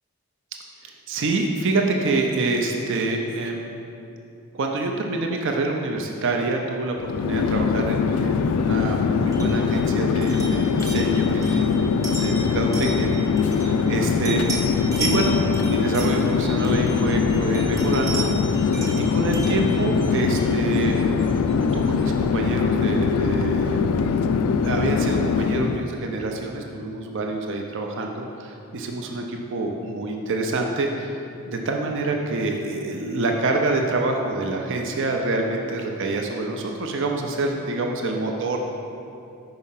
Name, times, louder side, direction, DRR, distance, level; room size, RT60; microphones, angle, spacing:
voice 1, 0.8-3.7 4.5-11.7 12.2-13.1 13.5-14.4 15.0-18.6 19.0-23.8 24.2-24.3 24.6-31.2 31.4-38.6, right 2 dB, 60° right, 2 dB, 0.5 m, -27 dB
Chatter / Fixed-wing aircraft airplane, 7.0-25.9, left 5 dB, 80° left, 0.3 m, -22 dB
sound 1, 9.3-14.0 14.2-17.2 17.5-20.6, right 2 dB, 15° right, 0.9 m, -35 dB
sound 2, 16.6-22.2, right 1 dB, 40° right, 0.9 m, -37 dB
5.3 x 4.8 x 5.6 m, 2.7 s
head